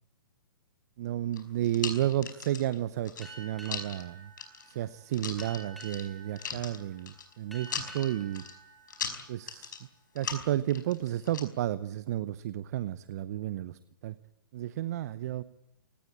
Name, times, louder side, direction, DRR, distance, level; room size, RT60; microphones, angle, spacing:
voice 1, 1.0-4.3 4.7-8.4 9.3-9.8 10.1-14.1 14.5-15.4, right 13 dB, 50° right, 16 dB, 0.8 m, -32 dB
sound 1, 1.3-2.7 3.0-4.0 4.4-4.7 5.1-6.1 6.4-7.3 7.6-8.5 8.9-9.8 10.2-11.4, left 7 dB, 65° left, 5.0 m, -38 dB
Boat Water vehicle, 3.2-10.3, right 3 dB, ahead, 6.3 m, -51 dB
24.5 x 19.0 x 8.7 m, 0.83 s
hypercardioid pair, 125°, 11 cm